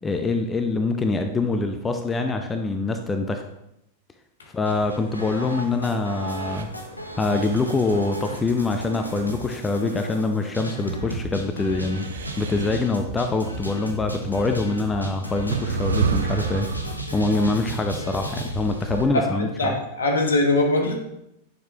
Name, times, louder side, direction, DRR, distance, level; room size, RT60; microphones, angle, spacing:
voice 1, 0.0-3.4 4.5-6.7 7.2-12.1 12.4-16.7 17.1-19.8, left 3 dB, 15° left, 6 dB, 0.6 m, -24 dB
sound 1, 4.7-19.1, right 1 dB, 85° left, 1.0 m, -34 dB
sound 2, 6.3-6.7 7.3-9.3 11.7-12.8 14.3-14.4 15.5-17.0, right 5 dB, 65° right, 0.7 m, -29 dB
voice 2, 19.1-20.9, left 2 dB, 70° left, 1 dB, 1.6 m, -22 dB
10.0 x 6.6 x 2.9 m, 0.82 s
figure-of-eight pair, 90°, 0 cm